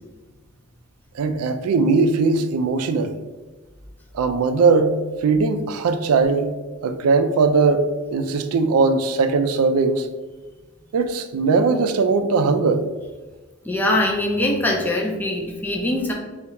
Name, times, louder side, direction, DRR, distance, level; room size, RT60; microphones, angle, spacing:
voice 1, 1.1-3.1 4.1-6.6 6.8-10.1 10.9-12.9, right 4 dB, 85° right, 8 dB, 0.3 m, -19 dB
voice 2, 13.6-16.1, left 1 dB, 10° left, -1 dB, 0.5 m, -22 dB
2.9 x 2.4 x 4.2 m, 1.2 s
head